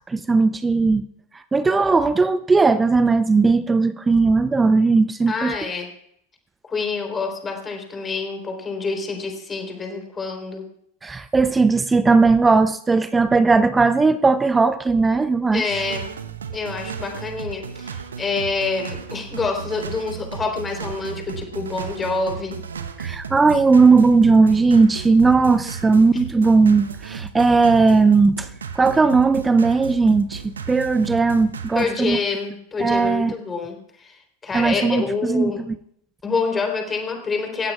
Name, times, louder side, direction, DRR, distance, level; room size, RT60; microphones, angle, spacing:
voice 1, 0.1-1.0 1.3-5.6 11.0-15.8 23.0-28.5 28.7-32.2 32.8-33.3 34.5-35.8, right 4 dB, 10° right, 14 dB, 0.5 m, -17 dB
voice 2, 5.3-5.9 6.7-10.6 15.5-16.0 16.5-22.6 25.6-25.7 31.7-34.1 34.4-35.6 36.2-37.7, left 4 dB, 15° left, 3 dB, 3.8 m, -27 dB
sound 1, 15.7-31.9, right 7 dB, 70° right, 1.0 m, -34 dB
27.0 x 15.5 x 2.4 m, 0.71 s
figure-of-eight pair, 90°, 0 cm